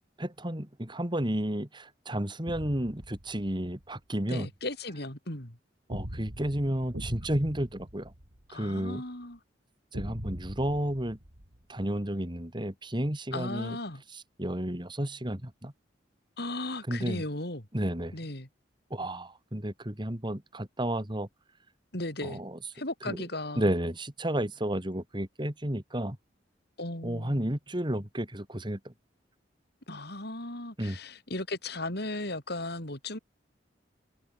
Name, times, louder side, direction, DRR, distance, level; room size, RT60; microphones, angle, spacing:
voice 1, 0.2-4.5 5.9-8.1 8.5-9.0 9.9-11.2 11.7-13.8 14.1-15.7 16.9-17.2 17.7-18.2 18.9-21.3 22.2-22.6 23.0-23.2 23.6-26.2 27.0-28.9 30.8-31.0, right 1 dB, 25° right, 2.7 m, -32 dB
sound 1, 2.5-3.8 5.9-8.9 9.9-12.1, equal, 70° right, 4.7 m, -42 dB
voice 2, 4.3-5.6 8.5-9.4 13.3-14.0 16.4-17.7 18.1-18.5 21.9-22.4 22.7-23.7 26.8-27.5 29.9-33.2, left 2 dB, 60° left, 5.2 m, -36 dB
head